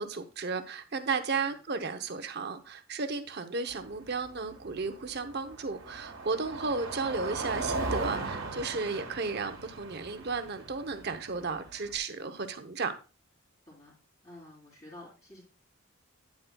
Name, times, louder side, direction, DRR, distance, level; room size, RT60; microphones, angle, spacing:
voice 1, 0.0-12.9, right 4 dB, 50° right, 0.7 m, -34 dB
Car passing by, 3.7-12.0, right 3 dB, 65° right, 1.5 m, -38 dB
voice 2, 14.2-15.4, left 1 dB, 30° left, 2.8 m, -50 dB
9.4 x 7.8 x 2.2 m
head